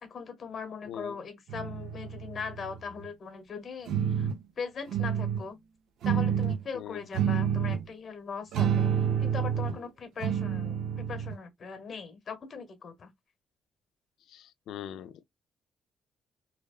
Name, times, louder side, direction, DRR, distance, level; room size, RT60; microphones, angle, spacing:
voice 1, 0.0-4.3 4.6-5.6 6.0-8.9 9.2-13.1, left 5 dB, 45° left, 0.9 m, -40 dB
voice 2, 0.9-1.2 6.7-7.0 14.3-15.2, left 10 dB, 80° left, 0.3 m, -42 dB
sound 1, 1.5-3.1 3.9-4.4 4.9-5.4 6.0-6.6 7.1-7.9 8.5-9.8 10.2-11.4, right 8 dB, 75° right, 0.5 m, -29 dB
2.8 x 2.1 x 2.3 m
cardioid pair, 90°, 0 cm